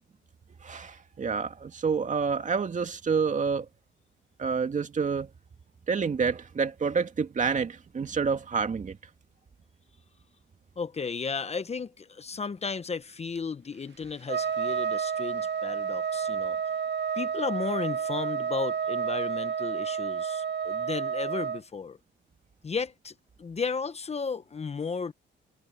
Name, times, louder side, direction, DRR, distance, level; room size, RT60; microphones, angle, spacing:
voice 1, 0.6-3.7 4.4-5.3 5.9-9.0, right 5 dB, 40° right, 2.3 m, -28 dB
voice 2, 10.8-16.6 17.2-22.0 22.6-25.1, left 5 dB, 30° left, 1.0 m, -34 dB
Trumpet, 14.3-21.6, right 7 dB, 60° right, 2.0 m, -30 dB
cardioid pair, 90°, 20 cm